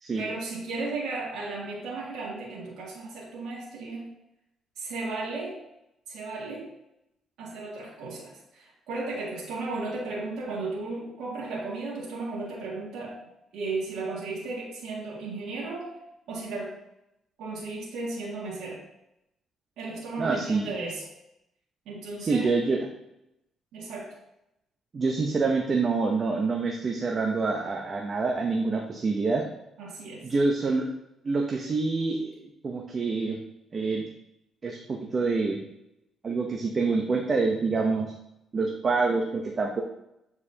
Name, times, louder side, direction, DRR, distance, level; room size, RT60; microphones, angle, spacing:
voice 1, 0.2-4.1 4.8-5.6 6.1-6.7 7.4-13.2 13.5-15.9 16.3-16.7 17.4-18.8 19.8-21.0 21.9-22.5 23.7-24.1 29.8-30.2, right 3 dB, 85° right, -6 dB, 2.1 m, -35 dB
voice 2, 20.2-20.7 22.3-22.9 24.9-29.4 30.2-30.9 31.2-32.3 32.6-33.4 33.7-34.0 34.6-35.6 36.2-38.1 38.5-39.8, right 4 dB, 40° right, 2 dB, 0.8 m, -26 dB
8.3 x 4.8 x 2.8 m, 0.84 s
cardioid pair, 90°, 0 cm